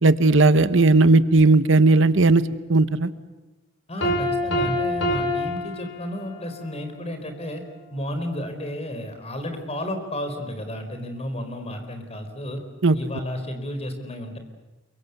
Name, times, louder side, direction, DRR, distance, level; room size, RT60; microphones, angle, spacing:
voice 1, 0.0-2.4 2.7-3.1 12.8-13.0, right 3 dB, 65° right, 13 dB, 1.1 m, -16 dB
voice 2, 3.9-7.6 7.9-12.6 12.9-14.4, left 1 dB, 30° left, 7 dB, 4.6 m, -32 dB
Piano, 4.0-6.6, left 1 dB, 65° left, 5.8 m, -26 dB
28.5 x 24.0 x 8.3 m, 1.1 s
head